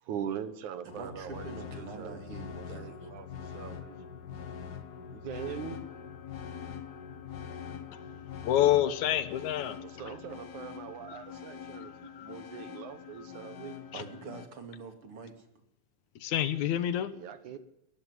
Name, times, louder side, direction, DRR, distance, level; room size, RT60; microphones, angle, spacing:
voice 1, 0.0-2.2 2.6-4.0 5.1-5.8 9.8-13.8 17.1-17.6, right 9 dB, 75° right, 12 dB, 2.8 m, -42 dB
voice 2, 0.8-3.1 13.9-15.5, right 5 dB, 45° right, 7 dB, 3.2 m, -45 dB
sound 1, 0.9-14.5, left 7 dB, 50° left, 1.3 m, -44 dB
voice 3, 8.4-9.8 11.1-11.2 11.8-11.9 12.2-12.3 16.2-17.1, left 11 dB, 75° left, 14 dB, 2.5 m, -27 dB
18.0 x 14.5 x 9.9 m, 0.80 s
omnidirectional pair, 3.5 m